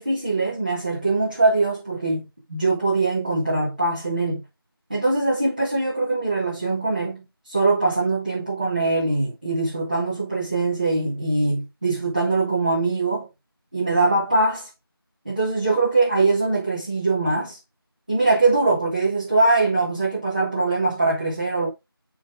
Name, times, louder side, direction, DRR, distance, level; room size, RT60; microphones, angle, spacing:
voice 1, 0.0-4.4 4.9-13.3 13.7-14.7 15.2-17.6 18.1-21.7, right 3 dB, 20° right, 3.1 m, -22 dB
12.5 x 4.3 x 3.7 m
figure-of-eight pair, 180°, 13 cm